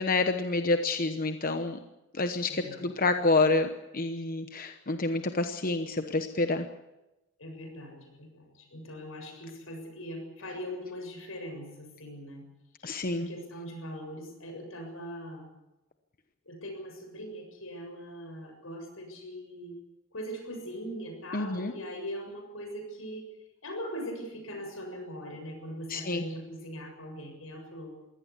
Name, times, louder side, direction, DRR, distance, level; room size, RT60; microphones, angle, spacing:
voice 1, 0.0-1.8 2.1-6.7 12.8-13.3 21.3-21.7 25.9-26.2, left 3 dB, 45° left, 7 dB, 1.0 m, -28 dB
voice 2, 2.5-2.9 7.4-12.5 13.1-15.4 16.5-19.8 20.1-23.3 23.6-27.9, equal, 90° left, 5 dB, 7.1 m, -41 dB
22.5 x 17.0 x 8.4 m, 0.97 s
head